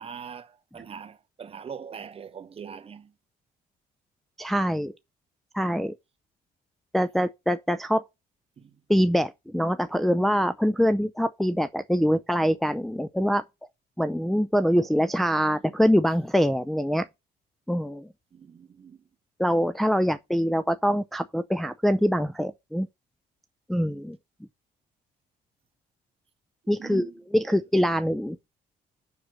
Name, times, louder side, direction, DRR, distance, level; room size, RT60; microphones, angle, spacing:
voice 1, 0.0-3.1 8.6-8.8 18.3-19.1 26.8-27.1 27.5-27.6, right 7 dB, 35° right, 1.2 m, -42 dB
voice 2, 4.4-5.0 5.5-5.9 6.9-8.0 8.9-13.4 14.0-17.1 17.7-18.1 19.4-22.9 23.7-24.2 26.7-28.4, equal, ahead, 0.4 m, -24 dB
7.0 x 6.2 x 6.3 m
cardioid pair, 110°, 17 cm